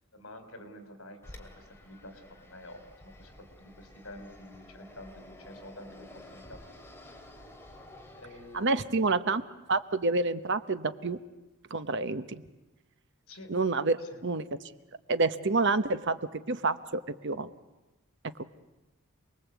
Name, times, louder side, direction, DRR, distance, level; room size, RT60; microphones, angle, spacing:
voice 1, 0.1-6.6 8.2-9.1 13.3-13.6 14.0-14.3, left 1 dB, 65° left, 7 dB, 4.1 m, -49 dB
Fixed-wing aircraft airplane, 1.2-9.0, left 1 dB, 10° left, 2.6 m, -51 dB
voice 2, 8.5-9.4 9.7-11.2 11.7-12.4 13.5-14.0 14.2-14.5 15.1-17.5 18.4-18.5, right 3 dB, 55° right, 12 dB, 1.0 m, -28 dB
28.0 x 20.5 x 8.3 m, 1.0 s
head